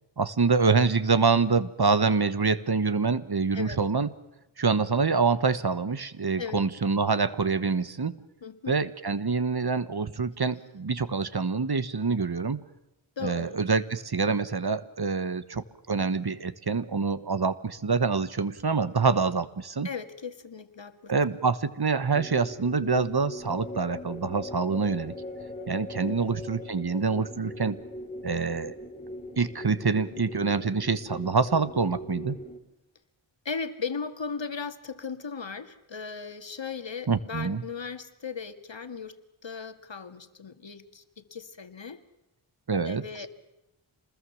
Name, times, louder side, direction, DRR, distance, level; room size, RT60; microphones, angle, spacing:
voice 1, 0.2-4.1 4.6-8.2 8.7-12.6 13.2-19.9 21.1-25.1 25.7-27.8 28.2-28.8 29.4-32.4 37.1-37.6 42.7-43.0, right 4 dB, 50° right, 14 dB, 1.4 m, -26 dB
voice 2, 8.4-8.7 13.2-13.6 19.8-21.4 26.0-26.2 33.5-39.2 39.4-42.0 42.9-43.3, left 5 dB, 65° left, 9 dB, 2.0 m, -37 dB
sound 1, 22.1-32.6, left 2 dB, 15° left, 4.2 m, -41 dB
27.0 x 21.0 x 7.2 m, 0.92 s
wide cardioid pair, 65°, 49 cm